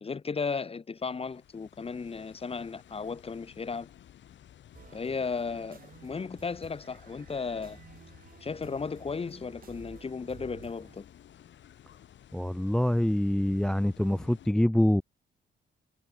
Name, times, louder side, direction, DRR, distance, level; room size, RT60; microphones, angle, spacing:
voice 1, 0.0-3.9 4.9-7.8 8.4-11.1, left 5 dB, 30° left, 1.5 m, -35 dB
sound 1, 0.9-14.5, left 10 dB, 70° left, 4.2 m, -55 dB
sound 2, 4.7-11.0, right 7 dB, 45° right, 3.0 m, -53 dB
voice 2, 12.3-15.0, left 1 dB, 5° left, 0.4 m, -25 dB
cardioid pair, 90°, 20 cm